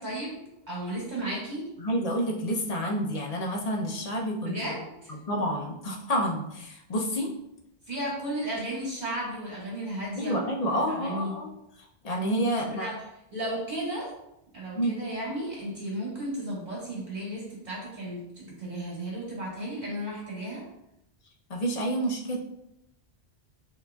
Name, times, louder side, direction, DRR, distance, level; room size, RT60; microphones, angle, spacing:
voice 1, 0.0-1.6 4.4-5.1 7.9-11.3 12.5-13.0 13.3-14.1 14.5-20.6, right 1 dB, 40° right, -6 dB, 1.6 m, -34 dB
voice 2, 1.8-4.6 5.1-7.3 10.1-11.5 12.0-12.9 14.7-15.0 21.5-22.4, equal, 45° left, 0 dB, 0.6 m, -29 dB
6.5 x 2.9 x 2.3 m, 0.85 s
omnidirectional pair, 1.1 m